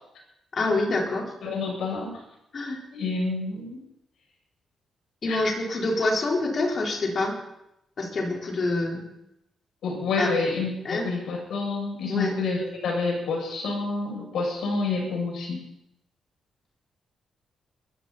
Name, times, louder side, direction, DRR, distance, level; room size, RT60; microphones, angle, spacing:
voice 1, 0.5-1.3 2.5-2.8 5.2-7.4 8.0-9.0 10.2-10.3 10.8-11.0 12.1-12.3, left 2 dB, 40° left, -1 dB, 4.4 m, -26 dB
voice 2, 1.4-2.1 2.9-3.8 5.3-5.4 9.8-15.6, left 3 dB, 75° left, 0 dB, 7.5 m, -28 dB
22.0 x 14.0 x 4.3 m, 0.84 s
cardioid pair, 140°, 0 cm